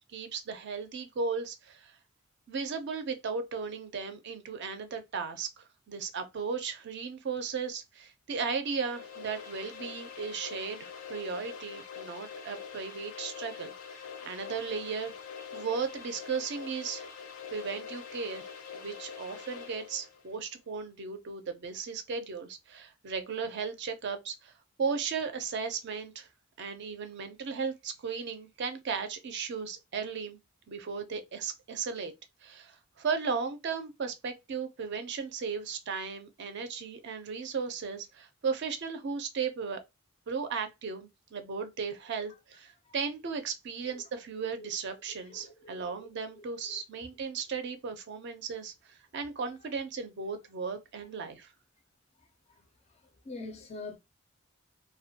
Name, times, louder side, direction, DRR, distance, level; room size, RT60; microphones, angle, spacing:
voice 1, 0.1-2.0 2.5-15.1 15.5-17.1 17.5-18.5 18.7-24.5 24.8-26.3 26.6-30.4 30.7-32.1 32.4-39.8 40.3-51.5, right 5 dB, 55° right, 0.4 m, -36 dB
sound 1, 8.6-20.2, left 6 dB, 90° left, 0.5 m, -44 dB
voice 2, 45.3-46.1 46.4-46.8 53.2-54.0, left 3 dB, 30° left, 0.4 m, -44 dB
2.2 x 2.1 x 2.7 m
head